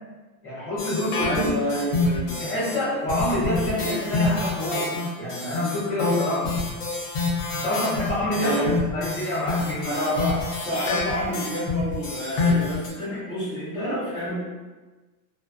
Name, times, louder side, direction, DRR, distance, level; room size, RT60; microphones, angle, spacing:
voice 1, 0.4-1.4 2.4-4.9 5.2-6.5 7.5-10.0, left 1 dB, 30° left, -9 dB, 0.9 m, -27 dB
sound 1, 0.8-2.7 3.1-12.9, left 3 dB, 55° left, 0.8 m, -27 dB
voice 2, 1.2-2.4 8.4-8.8 9.8-14.3, equal, 10° left, -18 dB, 0.6 m, -28 dB
2.5 x 2.1 x 2.4 m, 1.2 s
supercardioid pair, 175°, 47 cm